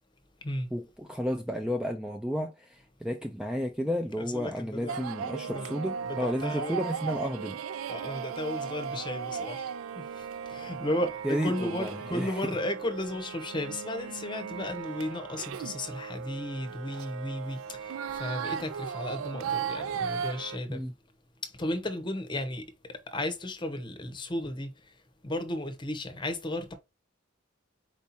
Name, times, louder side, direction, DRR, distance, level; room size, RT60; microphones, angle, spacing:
voice 1, 0.7-7.6 11.2-12.4 20.7-20.9, equal, 5° right, 0.3 m, -32 dB
voice 2, 4.2-5.0 5.5-5.7 6.0-6.8 7.9-9.7 9.9-20.8 21.4-22.6 23.1-24.7 25.2-26.7, left 1 dB, 25° left, 0.8 m, -34 dB
sound 1, 4.9-20.6, right 7 dB, 90° right, 0.3 m, -37 dB
4.6 x 2.8 x 4.0 m
head